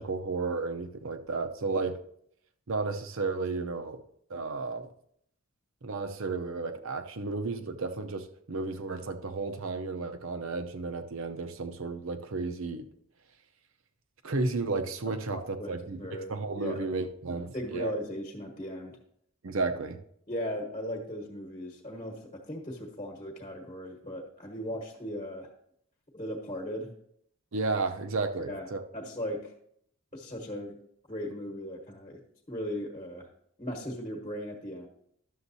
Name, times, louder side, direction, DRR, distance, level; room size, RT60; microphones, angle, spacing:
voice 1, 0.0-2.0 2.7-4.0 4.3-4.9 5.8-12.9 14.2-17.9 19.4-20.0 27.5-28.8, right 3 dB, 60° right, 7 dB, 0.6 m, -33 dB
voice 2, 15.3-16.9 17.5-19.0 20.3-25.5 26.1-26.9 28.4-28.7 28.9-29.4 30.1-30.8 31.1-32.2 32.5-33.3 33.6-34.9, equal, 25° left, -2 dB, 1.2 m, -37 dB
11.5 x 7.0 x 2.7 m, 0.69 s
head